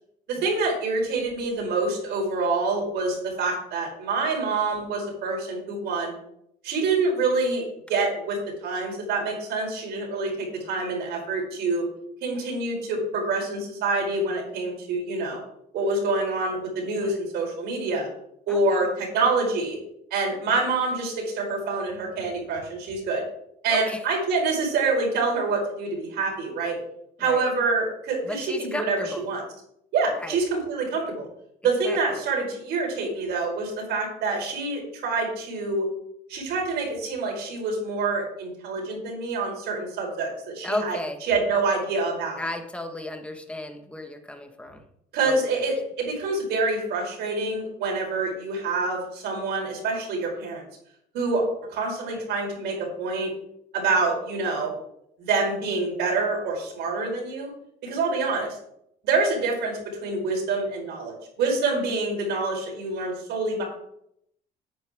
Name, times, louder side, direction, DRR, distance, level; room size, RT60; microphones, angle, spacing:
voice 1, 0.3-6.1 6.6-7.6 7.9-11.8 12.2-15.4 15.7-18.1 18.5-19.8 20.1-23.2 23.6-26.8 27.2-29.4 29.9-31.3 31.6-35.8 36.3-41.0 41.3-42.4 45.1-50.6 51.1-51.4 51.7-53.3 53.7-54.7 55.2-57.5 57.8-58.6 59.0-63.6, right 3 dB, 80° right, 0 dB, 5.0 m, -26 dB
voice 2, 18.5-18.8 20.5-20.6 23.7-24.0 27.2-27.5 28.2-29.3 30.1-30.4 31.8-32.2 40.6-41.2 42.4-44.8 45.2-45.6 52.1-52.2, left 1 dB, 5° left, 5 dB, 1.6 m, -34 dB
13.5 x 8.9 x 3.8 m, 0.74 s
cardioid pair, 110°, 17 cm